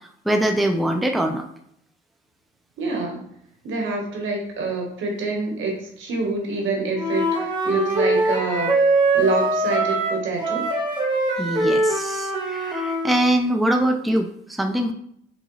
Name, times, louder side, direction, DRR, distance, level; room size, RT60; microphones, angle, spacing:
voice 1, 0.3-1.4 11.4-14.9, right 1 dB, ahead, 3 dB, 0.5 m, -23 dB
voice 2, 2.8-3.2 3.6-8.9 9.1-10.7, right 3 dB, 80° right, 1 dB, 1.3 m, -26 dB
Wind instrument woodwind instrument, 6.9-13.2, right 2 dB, 25° right, 1.3 m, -22 dB
3.9 x 3.5 x 3.1 m, 0.72 s
cardioid pair, 90°, 20 cm